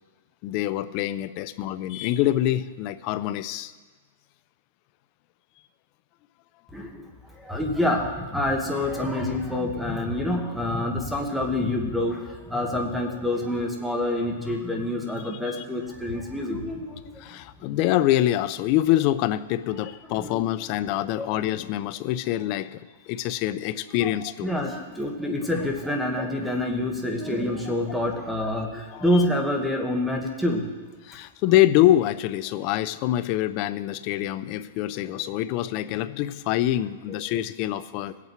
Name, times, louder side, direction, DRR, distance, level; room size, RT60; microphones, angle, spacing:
voice 1, 0.4-3.7 15.4-15.6 17.2-24.5 28.9-29.2 31.0-38.2, left 13 dB, 40° left, 14 dB, 0.5 m, -25 dB
voice 2, 6.7-7.0 7.4-17.1 20.1-20.4 20.9-21.3 24.0-24.1 24.4-30.6 37.1-37.2, left 1 dB, ahead, 1 dB, 1.5 m, -27 dB
19.5 x 8.3 x 4.6 m, 1.3 s
hypercardioid pair, 150°, 0 cm